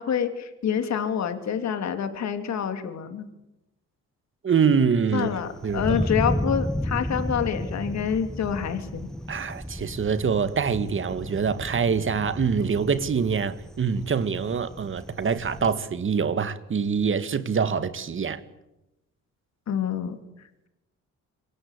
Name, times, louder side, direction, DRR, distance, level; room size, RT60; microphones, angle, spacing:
voice 1, 0.0-3.3 5.1-9.1 19.7-20.2, left 8 dB, 65° left, 3.0 m, -27 dB
voice 2, 4.4-5.4 5.6-6.0 9.3-18.4, right 6 dB, 40° right, 2.1 m, -25 dB
Thunder, 5.1-15.7, equal, ahead, 1.2 m, -33 dB
26.5 x 23.5 x 8.3 m
cardioid pair, 90°, 30 cm